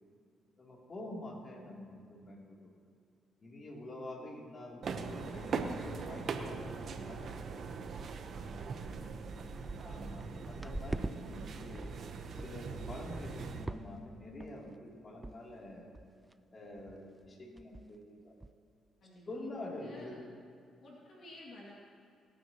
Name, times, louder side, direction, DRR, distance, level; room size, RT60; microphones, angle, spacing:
voice 1, 0.6-2.6 3.4-7.8 9.8-11.9 12.3-15.9 16.5-18.3 19.3-20.2, left 1 dB, 35° left, -3 dB, 3.2 m, -47 dB
sound 1, 4.8-13.6, right 5 dB, 60° right, 1.1 m, -41 dB
sound 2, 7.7-7.8 8.4-8.5 8.8-11.2 11.5-12.0 12.4-12.6 13.0-13.3 13.7-14.1 14.4-14.8 15.2-15.4 15.6-15.7 15.9-16.3 16.8-17.0 17.2-17.3 17.6-18.0 18.4-18.5, right 2 dB, 10° right, 0.3 m, -43 dB
voice 2, 8.5-9.7 19.0-19.2 19.7-20.2 20.8-21.7, left 1 dB, 60° left, -4 dB, 2.5 m, -54 dB
25.5 x 9.6 x 3.1 m, 2.3 s
cardioid pair, 90°, 0 cm